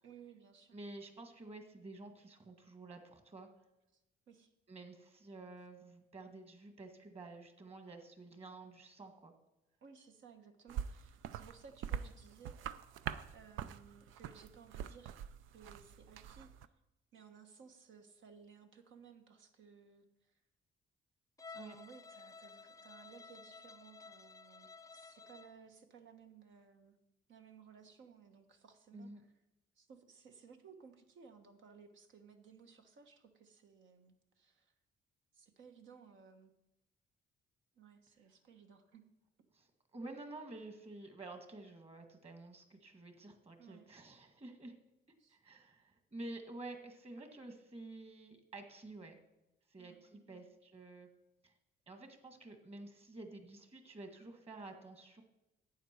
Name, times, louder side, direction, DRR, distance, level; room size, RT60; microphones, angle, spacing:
voice 1, 0.0-0.8 3.9-4.5 9.8-12.6 13.3-15.2 15.5-16.5 17.1-20.4 21.5-26.9 27.3-29.3 29.7-34.7 35.3-36.5 37.7-39.0 43.6-43.9 45.2-45.4 49.8-50.4, right 6 dB, 70° right, 5 dB, 1.4 m, -59 dB
voice 2, 0.7-3.5 4.7-9.3 21.5-21.8 28.9-29.2 39.5-39.7 39.9-44.7 45.3-49.2 49.7-51.1 51.4-51.5 51.9-55.2, right 2 dB, 30° right, 6 dB, 2.0 m, -50 dB
sound 1, 10.7-16.7, right 9 dB, 85° right, 0.5 m, -44 dB
Bowed string instrument, 21.4-25.6, left 4 dB, 15° left, 0.4 m, -54 dB
11.5 x 8.5 x 4.6 m, 0.93 s
cardioid pair, 90°, 20 cm